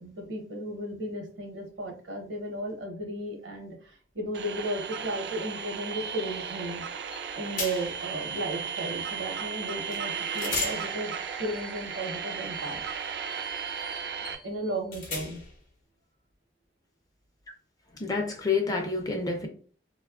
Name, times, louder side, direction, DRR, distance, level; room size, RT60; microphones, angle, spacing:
voice 1, 0.0-6.8 7.3-12.8 14.4-15.4, right 1 dB, 75° right, 0.8 m, -35 dB
sound 1, 4.3-14.4, right 7 dB, 60° right, 0.3 m, -35 dB
sound 2, 7.1-7.2 7.6-8.1 9.9-10.0 10.3-15.6, left 4 dB, 45° left, 0.7 m, -39 dB
voice 2, 18.0-19.5, left 4 dB, 20° left, 0.4 m, -28 dB
3.0 x 2.2 x 2.3 m
head